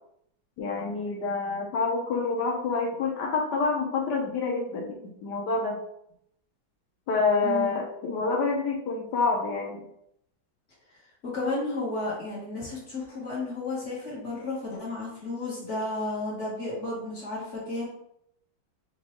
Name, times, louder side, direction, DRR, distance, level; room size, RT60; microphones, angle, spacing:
voice 1, 0.6-5.8 7.1-9.9, left 4 dB, 70° left, -1 dB, 1.2 m, -27 dB
voice 2, 7.4-7.8 11.2-17.9, left 2 dB, 40° left, -6 dB, 1.5 m, -32 dB
5.3 x 2.6 x 3.0 m, 0.74 s
omnidirectional pair, 2.1 m